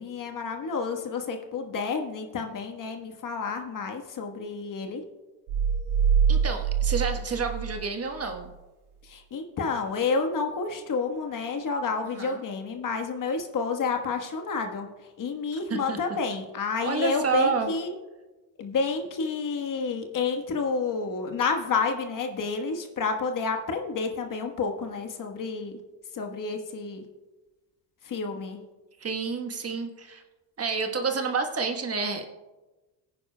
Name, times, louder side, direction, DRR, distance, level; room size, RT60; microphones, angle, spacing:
voice 1, 0.0-5.0 9.0-14.9 15.2-18.0 18.6-25.7 26.1-27.0 28.0-28.6, left 4 dB, 40° left, 5 dB, 1.4 m, -30 dB
sound 1, 5.5-8.5, right 7 dB, 80° right, 1.7 m, -25 dB
voice 2, 6.3-8.5 12.2-12.4 15.7-16.0 16.9-17.7 29.0-30.2 30.6-32.3, right 5 dB, 30° right, 5 dB, 1.3 m, -29 dB
18.0 x 10.0 x 2.3 m, 1.1 s
supercardioid pair, 85°, 49 cm